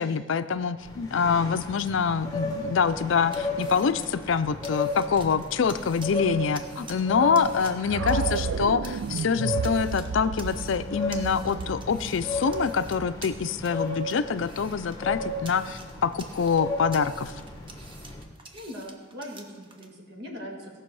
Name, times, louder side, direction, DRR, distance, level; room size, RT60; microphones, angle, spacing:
voice 1, 0.0-17.3, left 6 dB, 65° left, 12 dB, 0.4 m, -25 dB
sound 1, 0.8-18.2, left 2 dB, 20° left, 1.2 m, -35 dB
sound 2, 1.3-19.9, right 3 dB, 25° right, 0.9 m, -50 dB
voice 2, 7.2-7.5 18.5-20.8, equal, 55° right, -1 dB, 2.0 m, -40 dB
sound 3, 7.9-13.9, right 6 dB, 85° right, 0.4 m, -33 dB
17.0 x 6.1 x 4.7 m, 1.4 s
head